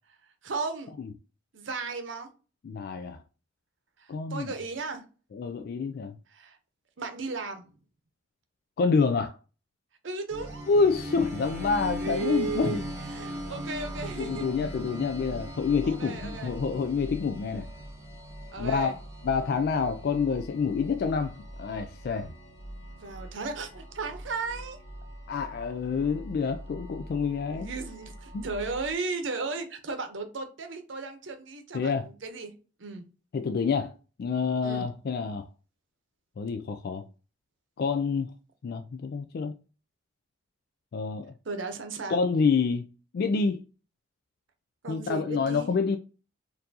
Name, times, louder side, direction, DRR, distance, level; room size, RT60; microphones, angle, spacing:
voice 1, 0.4-0.9 1.5-2.3 4.3-5.0 6.3-6.6 7.0-7.6 10.0-10.7 12.0-12.8 13.1-14.5 15.8-16.5 18.5-19.0 22.9-24.8 27.5-32.5 32.8-33.0 34.6-34.9 41.4-42.2 44.8-45.7, right 4 dB, 75° right, 0.7 m, -35 dB
voice 2, 2.6-3.2 4.1-4.5 5.3-6.1 8.8-9.3 10.7-12.8 14.2-17.7 18.6-19.0 19.2-22.3 25.3-27.7 28.3-28.5 31.7-32.1 33.3-33.9 34.2-35.5 36.4-37.0 37.8-38.3 38.6-39.5 40.9-41.3 42.1-42.9 43.1-43.6 44.9-46.0, left 5 dB, 55° left, 0.3 m, -27 dB
sound 1, 10.3-28.9, equal, 15° right, 1.3 m, -40 dB
4.4 x 2.6 x 2.7 m
head